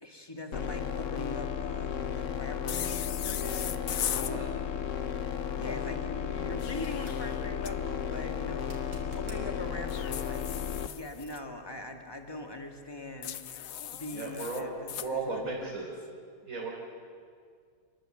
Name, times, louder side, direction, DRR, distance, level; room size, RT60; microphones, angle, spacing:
voice 1, 0.0-3.9 5.5-10.4 10.9-13.4 13.9-15.9, left 2 dB, 10° left, 3 dB, 2.0 m, -42 dB
sound 1, 0.5-10.9, left 8 dB, 50° left, 1.0 m, -34 dB
sound 2, 2.7-4.3 6.4-7.7 9.9-11.4 13.2-15.1, left 10 dB, 70° left, 0.8 m, -38 dB
sound 3, 6.7-7.2 8.6-9.4 12.4-12.5, right 2 dB, 65° right, 4.4 m, -48 dB
voice 2, 14.1-14.7 15.0-15.9 16.4-16.7, right 3 dB, 35° right, -4 dB, 4.4 m, -35 dB
28.0 x 21.0 x 8.0 m, 2.1 s
omnidirectional pair, 2.4 m